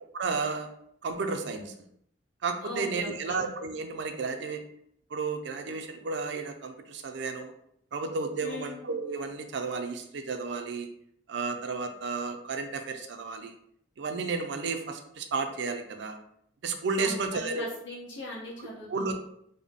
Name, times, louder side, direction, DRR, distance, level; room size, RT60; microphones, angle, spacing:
voice 1, 0.1-0.7 1.0-1.7 2.4-4.6 5.1-7.5 7.9-10.9 11.3-13.5 14.0-16.2 16.6-17.7 18.9-19.1, right 4 dB, 65° right, 6 dB, 0.4 m, -32 dB
voice 2, 2.6-3.4 8.4-8.8 17.0-19.1, left 1 dB, 65° left, -5 dB, 1.2 m, -39 dB
3.5 x 2.1 x 3.6 m, 0.71 s
head